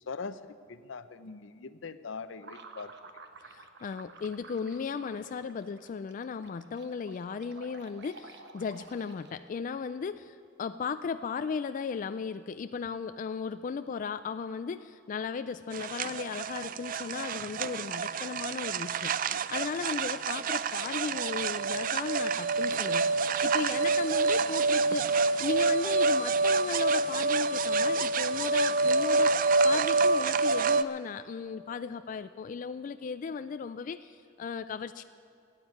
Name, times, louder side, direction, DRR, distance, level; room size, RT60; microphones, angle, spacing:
voice 1, 0.0-2.9, left 4 dB, 75° left, 13 dB, 0.6 m, -41 dB
sound 1, 2.4-9.6, right 4 dB, 65° right, 1.0 m, -52 dB
voice 2, 3.4-35.0, left 5 dB, 45° left, 11 dB, 0.3 m, -36 dB
sound 2, 15.7-30.8, right 3 dB, 45° right, 0.4 m, -27 dB
13.5 x 9.0 x 9.5 m, 2.4 s
head